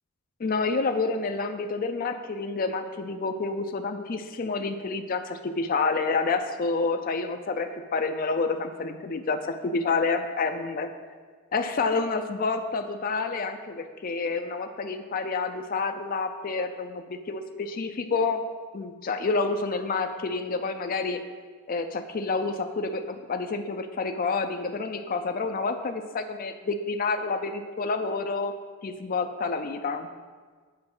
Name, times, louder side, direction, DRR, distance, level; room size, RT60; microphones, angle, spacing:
voice 1, 0.4-10.9 11.5-18.4 18.7-21.2 21.7-28.6 28.8-30.1, left 4 dB, 40° left, 6 dB, 0.4 m, -28 dB
7.5 x 4.7 x 6.0 m, 1.5 s
head